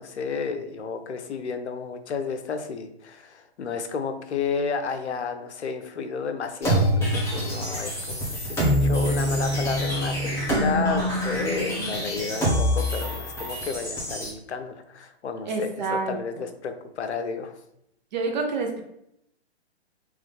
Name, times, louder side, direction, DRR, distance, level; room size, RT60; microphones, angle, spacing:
voice 1, 0.0-17.6, left 5 dB, 80° left, 7 dB, 0.7 m, -32 dB
sound 1, 6.6-14.3, equal, 10° left, 1.2 m, -25 dB
voice 2, 15.4-16.4 18.1-18.8, right 3 dB, 40° right, 3 dB, 0.9 m, -28 dB
3.7 x 3.1 x 3.5 m, 0.78 s
hypercardioid pair, 140°, 33 cm